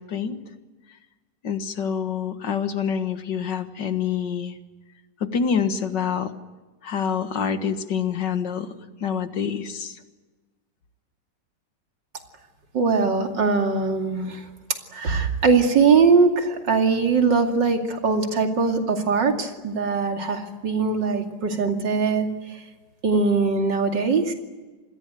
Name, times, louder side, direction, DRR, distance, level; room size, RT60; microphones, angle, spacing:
voice 1, 0.1-0.4 1.4-4.5 5.2-6.3 6.8-8.7 9.0-10.0, left 7 dB, 75° left, 9 dB, 2.2 m, -26 dB
voice 2, 12.7-14.4 14.9-22.3 23.0-24.3, right 4 dB, 80° right, 4 dB, 3.2 m, -21 dB
27.0 x 20.5 x 9.2 m, 1.2 s
omnidirectional pair, 1.9 m